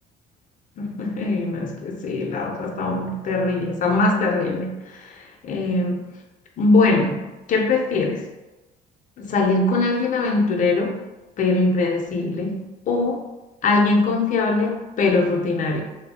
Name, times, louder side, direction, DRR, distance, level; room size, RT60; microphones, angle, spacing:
voice 1, 0.8-4.8 5.4-6.0 6.6-7.2 7.5-8.2 9.2-10.9 11.4-12.6 12.9-13.2 13.6-15.8, left 3 dB, 50° left, 1 dB, 0.6 m, -21 dB
2.6 x 2.2 x 3.4 m, 1.1 s
cardioid pair, 110°, 17 cm